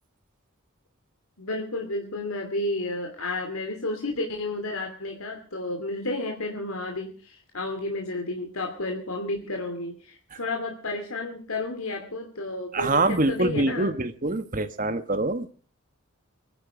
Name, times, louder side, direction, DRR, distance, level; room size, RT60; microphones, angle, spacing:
voice 1, 1.4-13.9, left 2 dB, 90° left, 2 dB, 2.8 m, -32 dB
voice 2, 12.7-15.5, right 2 dB, 40° right, 10 dB, 1.5 m, -25 dB
24.0 x 11.0 x 5.1 m, 0.40 s
head